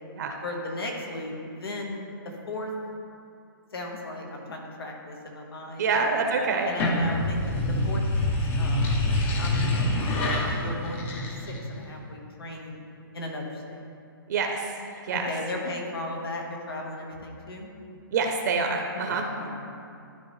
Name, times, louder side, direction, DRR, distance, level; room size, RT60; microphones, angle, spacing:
voice 1, 0.4-2.7 3.7-6.2 6.6-8.0 8.6-8.9 9.4-12.8 13.1-13.8 15.1-17.7 19.1-19.6, left 2 dB, 85° left, 0 dB, 1.4 m, -36 dB
voice 2, 5.8-6.7 14.3-14.7 15.1-15.3 18.1-19.2, right 4 dB, 50° right, 4 dB, 0.7 m, -26 dB
sound 1, 6.6-11.9, left 1 dB, 15° left, 0.5 m, -26 dB
12.0 x 4.5 x 3.2 m, 2.5 s
hypercardioid pair, 155°, 12 cm